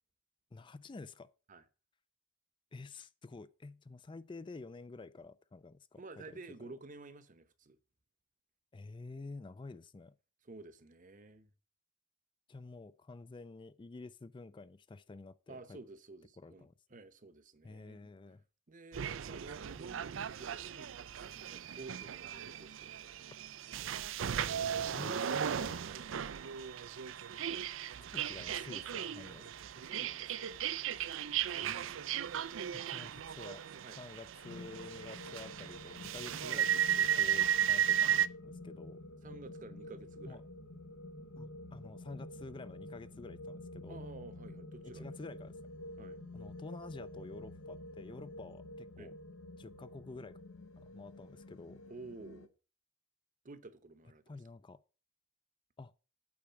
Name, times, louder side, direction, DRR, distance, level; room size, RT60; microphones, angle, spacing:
voice 1, 0.5-1.3 2.7-6.7 8.7-10.1 12.5-15.8 16.4-16.7 17.6-18.4 24.2-24.3 24.9-25.8 28.1-29.5 31.6-31.8 32.7-33.6 34.0-38.1 38.4-39.0 40.3-40.4 41.4-44.0 44.8-45.6 46.3-49.1 49.6-50.4 50.8-51.8 54.3-54.8 55.8-55.9, left 3 dB, 25° left, 0.4 m, -50 dB
voice 2, 5.9-7.8 10.4-11.5 15.5-18.1 18.7-20.9 21.2-23.3 25.8-26.6 29.7-30.6 33.8-34.0 39.2-40.4 43.9-45.2 46.0-46.2 49.0-49.1 51.9-52.5 53.4-54.4, right 3 dB, 45° right, 0.9 m, -52 dB
sound 1, 18.9-38.3, right 9 dB, 80° right, 0.5 m, -36 dB
sound 2, 34.4-52.5, left 1 dB, 85° left, 1.0 m, -49 dB
8.6 x 4.8 x 7.0 m
head